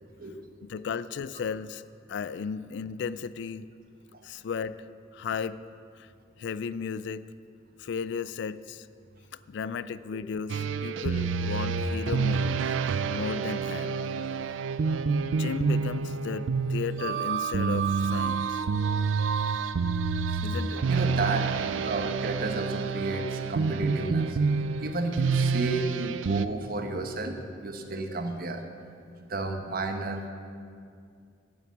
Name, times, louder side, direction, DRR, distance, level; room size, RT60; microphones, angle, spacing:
voice 1, 0.0-0.8 4.1-4.2 10.1-10.2 20.3-20.5 20.9-24.4 24.8-28.6 29.2-30.3, right 2 dB, 50° right, 5 dB, 1.0 m, -32 dB
voice 2, 0.6-1.8 2.1-3.7 4.2-4.9 5.1-5.6 6.0-6.1 6.4-7.3 7.8-8.9 9.5-12.6 13.1-14.0 15.3-18.6 20.4-20.8, left 6 dB, 65° left, 16 dB, 0.3 m, -35 dB
sound 1, 10.5-26.5, right 5 dB, 80° right, 0.4 m, -28 dB
9.2 x 9.0 x 7.2 m, 2.3 s
head